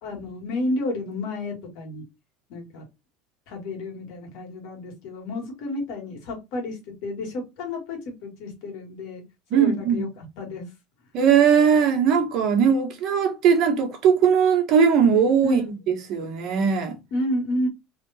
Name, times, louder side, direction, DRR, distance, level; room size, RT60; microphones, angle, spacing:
voice 1, 0.0-2.1 2.5-2.8 3.5-9.2 9.5-10.7 15.4-15.7 17.1-17.7, left 1 dB, 70° left, 1.9 m, -31 dB
voice 2, 9.5-10.1 11.1-17.0, right 7 dB, 50° right, 1.1 m, -19 dB
3.4 x 2.8 x 4.1 m
cardioid pair, 140°, 0 cm